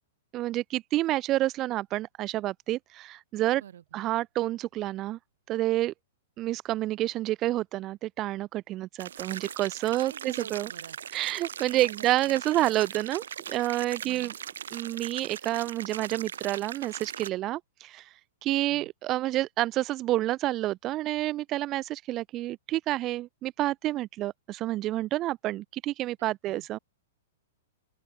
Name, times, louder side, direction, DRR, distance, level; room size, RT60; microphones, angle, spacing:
voice 1, 0.3-3.6 3.9-5.2 5.5-5.9 6.4-10.7 11.1-14.3 14.7-18.0 18.4-26.8, right 15 dB, 25° right, 0.5 m, -29 dB
voice 2, 3.5-4.0 9.9-11.2 11.7-12.8 14.0-14.4 18.6-18.9 26.4-26.7, right 10 dB, 70° right, 6.1 m, -48 dB
sound 1, 9.0-17.3, right 8 dB, 85° right, 6.3 m, -40 dB
open air
hypercardioid pair, 160°, 0 cm